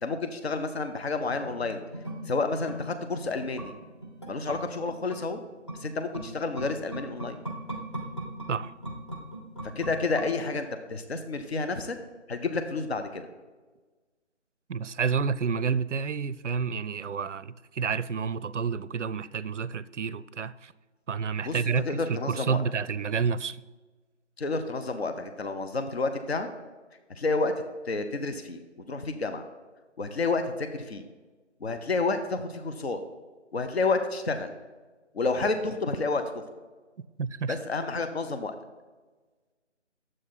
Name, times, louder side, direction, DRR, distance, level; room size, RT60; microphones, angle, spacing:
voice 1, 0.0-1.8 2.3-3.7 4.3-5.4 5.8-7.4 9.8-12.0 12.3-13.3 21.4-21.6 21.9-22.6 24.4-26.5 27.1-27.5 27.9-28.6 28.9-29.4 30.0-31.0 31.6-33.0 33.5-34.5 35.1-36.4 37.5-38.6, left 3 dB, 55° left, 0.8 m, -30 dB
sound 1, 1.3-10.8 11.1-11.2, right 1 dB, 25° left, 0.7 m, -40 dB
voice 2, 14.7-20.7 21.1-23.6 37.2-37.6, right 6 dB, 75° right, 0.5 m, -29 dB
10.0 x 7.7 x 4.0 m
figure-of-eight pair, 155°, 37 cm